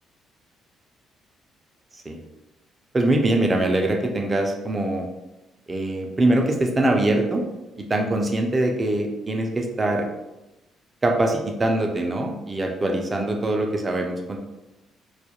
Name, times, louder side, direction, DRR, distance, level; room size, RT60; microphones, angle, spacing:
voice 1, 2.9-5.1 5.7-7.4 7.8-10.1 11.0-14.4, right 1 dB, 25° right, 2 dB, 0.4 m, -23 dB
2.3 x 2.1 x 2.8 m, 0.99 s
cardioid pair, 105°, 0 cm